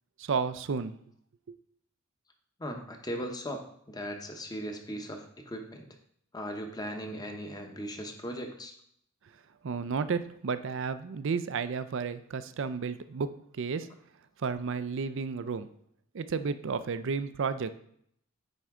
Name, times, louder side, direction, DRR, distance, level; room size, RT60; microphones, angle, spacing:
voice 1, 0.2-1.0 1.5-1.6 9.6-13.9 14.4-15.7 16.1-17.7, right 5 dB, 60° right, 13 dB, 0.5 m, -32 dB
voice 2, 2.6-3.6 3.9-5.9 6.3-8.7, equal, 20° left, 4 dB, 0.9 m, -38 dB
9.3 x 4.5 x 3.7 m, 0.67 s
head